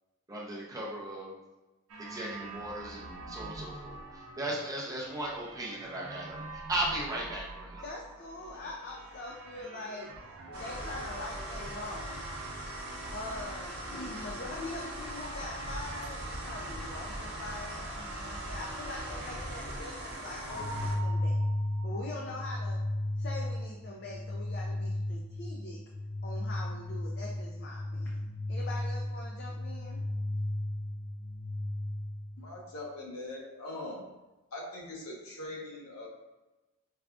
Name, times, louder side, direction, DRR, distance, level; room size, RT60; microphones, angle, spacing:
voice 1, 0.3-1.4 2.0-7.9, right 1 dB, 15° right, -4 dB, 0.5 m, -37 dB
sound 1, 1.9-12.1, right 3 dB, 80° right, 0.5 m, -46 dB
voice 2, 7.8-10.1 10.6-12.2 13.1-21.4 21.8-22.8 23.2-25.8 26.2-28.2 28.5-30.0, left 2 dB, 50° left, -2 dB, 0.4 m, -43 dB
sound 2, 10.5-21.0, right 1 dB, 45° right, 1.0 m, -40 dB
sound 3, 20.5-32.5, left 1 dB, 20° left, 0.7 m, -34 dB
voice 3, 32.4-34.1 34.5-36.1, left 2 dB, 80° left, -3 dB, 0.9 m, -41 dB
4.8 x 2.3 x 2.4 m, 1.1 s
head